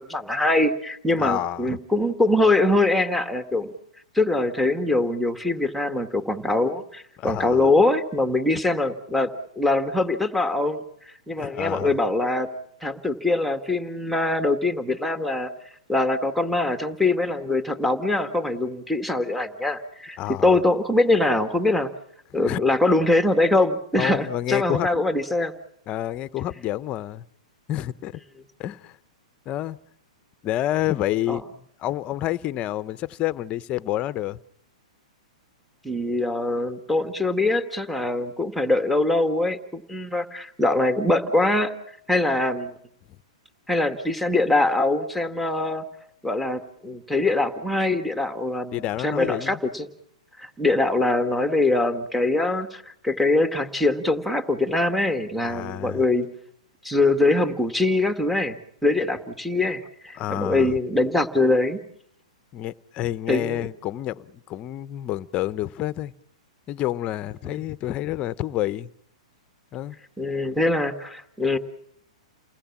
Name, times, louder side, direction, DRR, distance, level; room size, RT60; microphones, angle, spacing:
voice 1, 0.0-3.7 4.1-12.5 12.8-15.5 15.9-21.9 22.3-25.6 31.3-31.4 35.8-41.7 42.1-42.7 43.7-45.8 46.2-49.9 50.4-56.3 56.8-58.6 58.8-61.8 63.3-63.7 67.4-67.6 70.2-71.6, left 2 dB, ahead, 1.8 m, -23 dB
voice 2, 1.2-1.8 7.2-7.7 11.4-11.9 20.2-20.5 22.5-22.6 24.0-24.9 25.9-27.2 27.7-28.2 28.6-28.9 29.5-29.8 30.4-31.4 31.8-34.4 48.7-49.6 55.4-56.0 60.2-60.7 62.5-66.1 66.7-68.9 69.7-70.0, left 13 dB, 30° left, 0.9 m, -28 dB
29.5 x 20.0 x 7.4 m
hypercardioid pair, 130°, 4 cm